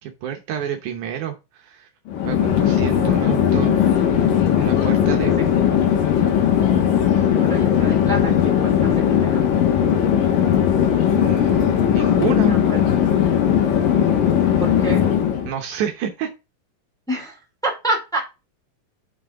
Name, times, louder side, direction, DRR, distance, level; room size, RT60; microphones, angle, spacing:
voice 1, 0.0-1.9 2.2-3.8 4.1-4.2 4.5-5.4 11.1-12.6 15.4-16.3, right 9 dB, 70° right, 4 dB, 2.2 m, -29 dB
Chatter / Fixed-wing aircraft airplane, 2.1-15.5, left 9 dB, 85° left, 2.9 m, -18 dB
voice 2, 5.4-5.7 7.3-8.3 8.6-9.5 12.4-12.8 14.6-15.0 17.1-17.4 17.6-18.2, right 1 dB, ahead, -1 dB, 2.1 m, -28 dB
6.0 x 5.9 x 3.7 m, 0.27 s
omnidirectional pair, 3.8 m